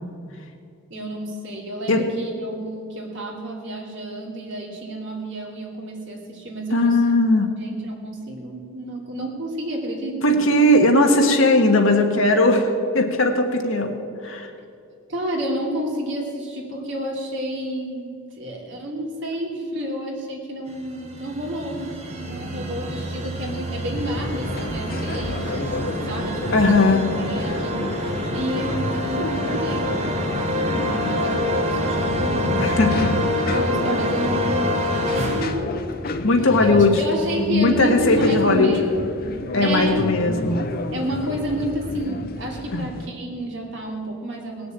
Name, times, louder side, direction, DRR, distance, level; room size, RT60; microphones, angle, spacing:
voice 1, 0.9-7.1 7.6-10.4 15.1-27.9 28.3-32.7 33.1-38.9 39.6-40.1 40.9-44.7, right 1 dB, 55° right, 0 dB, 2.7 m, -30 dB
voice 2, 6.7-7.5 10.2-14.0 14.2-14.5 26.5-27.1 32.6-33.1 36.2-37.1 37.5-38.7 39.5-40.6 42.7-42.9, left 2 dB, 60° left, 4 dB, 1.5 m, -18 dB
sound 1, 20.8-35.5, left 1 dB, 30° right, 1.3 m, -26 dB
sound 2, 23.9-43.1, left 2 dB, 45° left, 0.7 m, -32 dB
19.0 x 6.9 x 8.8 m, 2.5 s
head